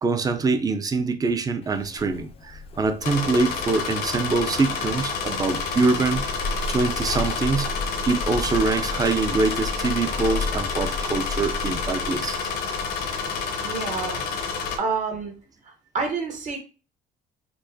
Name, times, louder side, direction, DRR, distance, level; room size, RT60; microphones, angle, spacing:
voice 1, 0.0-6.4 6.7-7.7 8.1-12.4, right 4 dB, 20° right, 0.4 m, -24 dB
Zipper (clothing), 1.6-13.3, left 3 dB, 35° left, 0.4 m, -34 dB
sound 1, 3.0-14.8, left 5 dB, 75° left, 0.7 m, -29 dB
voice 2, 13.6-14.2 14.8-15.3 15.6-16.6, right 4 dB, 50° right, 1.0 m, -28 dB
4.5 x 2.1 x 2.6 m
cardioid pair, 110°, 17 cm